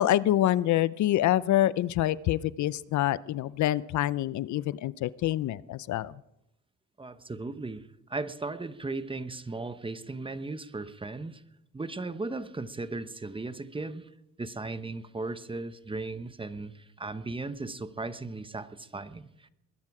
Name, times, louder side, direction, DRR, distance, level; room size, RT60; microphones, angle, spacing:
voice 1, 0.0-6.2, left 13 dB, 70° left, 19 dB, 0.6 m, -26 dB
voice 2, 7.0-11.4 11.7-14.1 14.4-19.5, right 3 dB, 15° right, 12 dB, 1.0 m, -37 dB
21.5 x 12.0 x 4.9 m, 0.83 s
cardioid pair, 90°, 30 cm